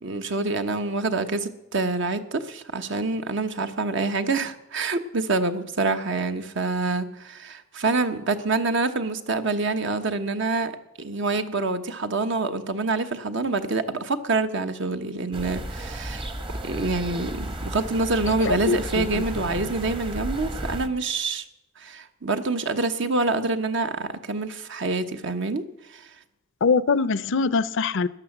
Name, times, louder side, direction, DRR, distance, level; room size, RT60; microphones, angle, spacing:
voice 1, 0.0-10.7 11.0-16.3 16.6-21.4 21.8-25.6 25.9-26.0, right 3 dB, 65° right, 1.1 m, -26 dB
sound 1, 15.3-20.9, right 1 dB, 25° right, 1.0 m, -33 dB
voice 2, 18.5-19.1 26.6-28.1, left 4 dB, 65° left, 0.5 m, -23 dB
14.0 x 10.5 x 7.2 m
head